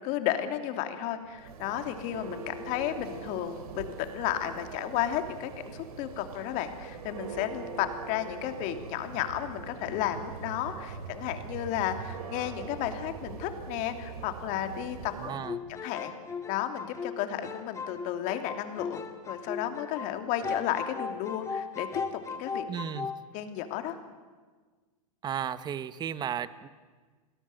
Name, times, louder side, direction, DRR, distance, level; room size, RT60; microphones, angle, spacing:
voice 1, 0.0-15.4 15.8-16.1 16.5-22.0 22.3-22.6 23.3-24.0, left 11 dB, 45° left, 7 dB, 2.9 m, -33 dB
Church bell, 1.2-15.5, right 5 dB, 75° right, 3.1 m, -42 dB
voice 2, 15.2-15.6 22.7-23.1 25.2-26.7, right 8 dB, 20° right, 14 dB, 1.2 m, -34 dB
sound 1, 15.3-20.2 20.4-23.2, left 5 dB, 15° left, 2.1 m, -37 dB
29.0 x 21.0 x 8.0 m, 1.4 s
hypercardioid pair, 125°, 19 cm